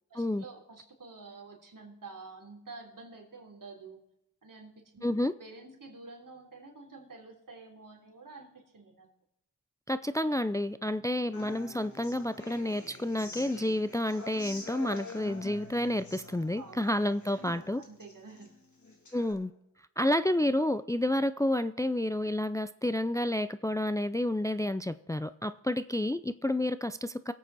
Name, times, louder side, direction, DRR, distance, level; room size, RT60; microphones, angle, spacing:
voice 1, 0.1-4.0 4.4-5.1 5.4-9.1 16.6-16.9 17.3-18.5, right 3 dB, 65° right, 0 dB, 3.4 m, -49 dB
voice 2, 5.0-5.3 9.9-17.8 19.1-19.5 20.0-27.3, left 1 dB, 10° left, 13 dB, 0.5 m, -30 dB
Human voice / Acoustic guitar, 11.3-19.3, left 3 dB, 55° left, 3.1 m, -47 dB
23.0 x 8.5 x 4.1 m, 0.85 s
cardioid pair, 60°, 35 cm